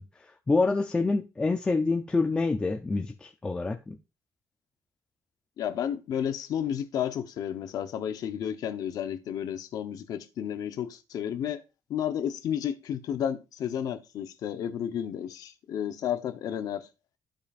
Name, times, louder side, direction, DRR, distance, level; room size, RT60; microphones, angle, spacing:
voice 1, 0.2-4.0, left 3 dB, 10° left, 0.4 m, -27 dB
voice 2, 5.6-11.6 11.9-16.9, left 9 dB, 55° left, 0.8 m, -32 dB
15.0 x 5.2 x 2.4 m
cardioid pair, 180°, 7 cm